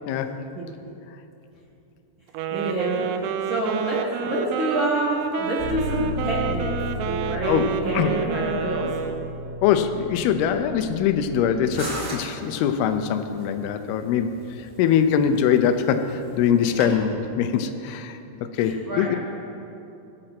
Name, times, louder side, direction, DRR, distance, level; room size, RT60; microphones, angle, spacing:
voice 1, 0.1-0.4 7.5-8.1 9.6-14.4 14.8-19.2, left 8 dB, 80° left, 9 dB, 2.4 m, -23 dB
Wind instrument woodwind instrument, 2.3-9.5, right 8 dB, 85° right, 3.0 m, -29 dB
voice 2, 2.5-8.9 16.6-16.7 18.6-19.2, right 1 dB, 65° right, -6 dB, 1.2 m, -28 dB
Bass guitar, 5.6-11.8, left 1 dB, 20° left, 2.2 m, -34 dB
sound 1, 11.7-17.0, right 1 dB, 30° right, 2.6 m, -39 dB
22.0 x 7.8 x 5.9 m, 2.8 s
omnidirectional pair, 5.1 m